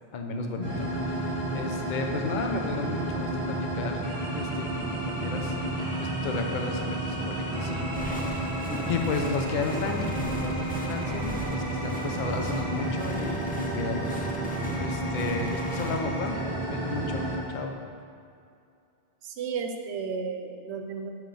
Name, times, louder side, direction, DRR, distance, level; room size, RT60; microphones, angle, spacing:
voice 1, 0.1-4.0 4.3-8.5 8.9-14.3 14.8-16.4 16.7-17.8, left 4 dB, 55° left, 4 dB, 0.7 m, -33 dB
sound 1, 0.6-17.4, right 1 dB, 35° right, 1.4 m, -31 dB
sound 2, 7.9-16.0, left 1 dB, 15° left, 0.4 m, -39 dB
voice 2, 19.2-21.1, right 5 dB, 85° right, 5 dB, 0.9 m, -33 dB
7.2 x 3.2 x 5.3 m, 2.4 s
omnidirectional pair, 1.1 m